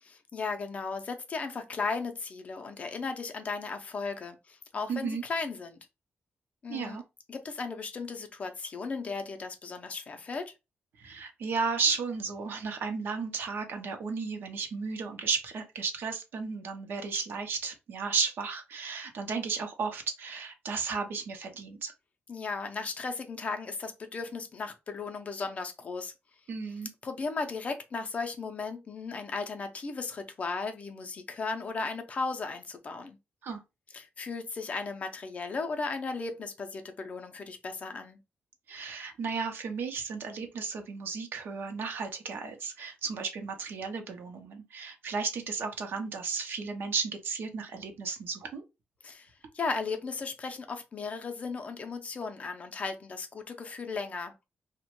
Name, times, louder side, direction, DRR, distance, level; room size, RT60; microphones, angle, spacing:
voice 1, 0.0-5.8 6.6-7.0 7.3-10.5 22.3-26.1 27.0-33.2 33.9-38.2 49.0-49.3 49.5-54.4, left 4 dB, 35° left, 0.5 m, -36 dB
voice 2, 4.9-5.2 6.7-7.0 11.0-21.9 26.5-26.9 33.4-33.6 38.7-48.6, right 5 dB, 65° right, 0.6 m, -34 dB
2.9 x 2.1 x 2.9 m
wide cardioid pair, 150°, 4 cm